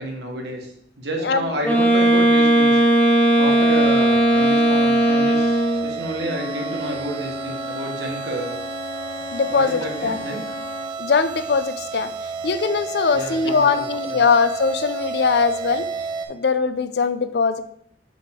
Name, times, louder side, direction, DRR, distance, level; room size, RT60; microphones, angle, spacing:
voice 1, 0.0-2.8 3.4-8.6 9.5-10.4 13.1-14.3, right 1 dB, 70° right, 1 dB, 1.3 m, -30 dB
voice 2, 1.2-1.5 9.3-10.2 11.0-12.1 12.4-15.9 16.3-17.6, left 5 dB, 65° left, 11 dB, 0.4 m, -21 dB
Wind instrument woodwind instrument, 1.6-6.0, right 1 dB, 10° left, 0.9 m, -17 dB
sound 1, 3.5-16.3, right 5 dB, 30° right, 0.5 m, -32 dB
Wind instrument woodwind instrument 2, 6.1-11.0, left 4 dB, 80° left, 1.3 m, -35 dB
5.6 x 5.2 x 3.6 m, 0.70 s
head